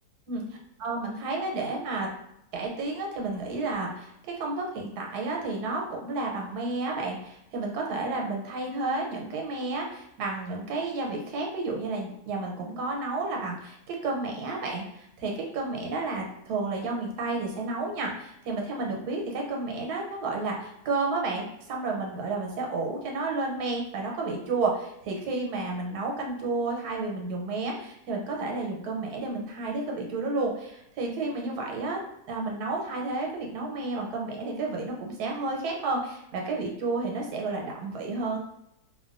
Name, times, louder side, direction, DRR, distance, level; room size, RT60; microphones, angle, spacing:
voice 1, 0.8-2.1 2.5-32.0 32.3-38.4, right 3 dB, 85° right, 0 dB, 1.2 m, -31 dB
2.8 x 2.2 x 2.4 m, 0.80 s
omnidirectional pair, 1.7 m